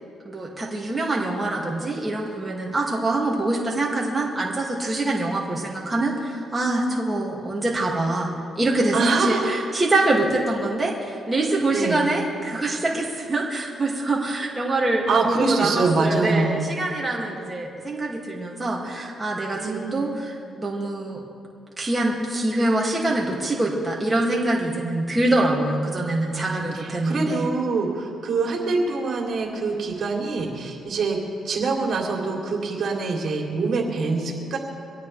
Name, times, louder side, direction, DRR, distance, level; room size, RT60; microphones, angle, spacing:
voice 1, 0.2-21.2 21.8-27.5, right 2 dB, 15° right, -3 dB, 2.4 m, -25 dB
voice 2, 8.9-9.5 11.7-12.0 15.1-16.7 19.5-20.0 26.4-31.2 31.4-34.6, right 3 dB, 55° right, -1 dB, 3.2 m, -24 dB
24.0 x 17.0 x 3.4 m, 2.4 s
cardioid pair, 90°, 0 cm